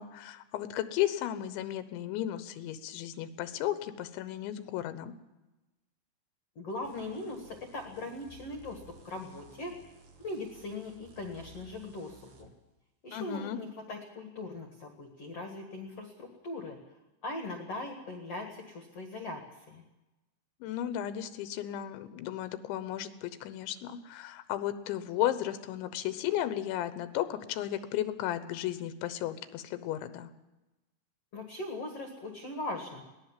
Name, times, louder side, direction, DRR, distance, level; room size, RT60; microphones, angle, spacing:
voice 1, 0.0-5.1 13.1-13.6 20.6-30.3, left 12 dB, 85° left, 12 dB, 3.3 m, -34 dB
voice 2, 6.6-9.7 10.2-12.5 13.0-16.8 17.2-19.4 19.7-19.8 31.3-33.0, left 2 dB, 50° left, 4 dB, 2.1 m, -40 dB
sound 1, 6.8-12.5, right 3 dB, 55° right, 3.4 m, -56 dB
21.5 x 17.0 x 7.5 m, 1.0 s
omnidirectional pair, 5.2 m